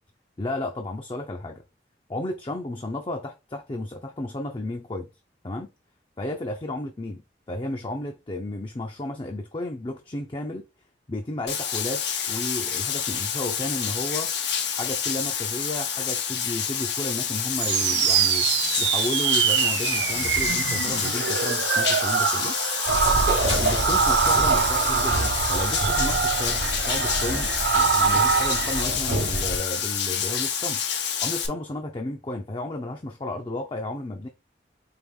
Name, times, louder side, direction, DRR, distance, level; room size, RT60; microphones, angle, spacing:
voice 1, 0.4-1.6 2.1-5.1 5.4-5.7 6.2-7.2 7.5-10.7 11.1-14.3 14.8-22.6 23.4-26.6 26.9-30.8 31.2-34.3, left 1 dB, 25° left, 0.5 m, -33 dB
Bathtub (filling or washing), 11.5-31.5, left 7 dB, 65° left, 0.8 m, -28 dB
sound 1, 17.6-28.8, right 8 dB, 65° right, 0.4 m, -24 dB
sound 2, 22.9-29.6, right 2 dB, 80° right, 1.0 m, -28 dB
4.7 x 3.0 x 3.5 m
head